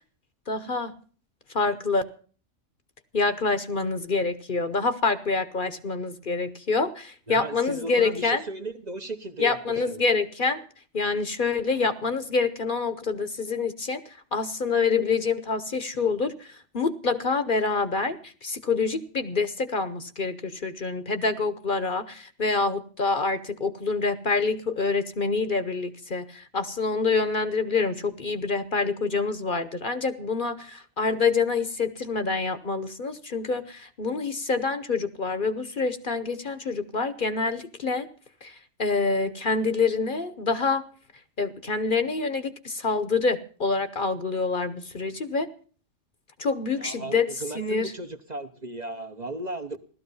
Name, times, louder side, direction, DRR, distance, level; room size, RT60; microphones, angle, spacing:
voice 1, 0.5-0.9 1.5-2.0 3.1-8.4 9.4-10.6 10.9-38.1 38.4-40.8 41.4-45.5 46.4-47.3 47.5-47.9, left 4 dB, 45° left, 1.0 m, -26 dB
voice 2, 7.3-10.0 46.7-49.8, right 2 dB, 35° right, 1.0 m, -36 dB
16.0 x 13.0 x 5.5 m
omnidirectional pair, 1.3 m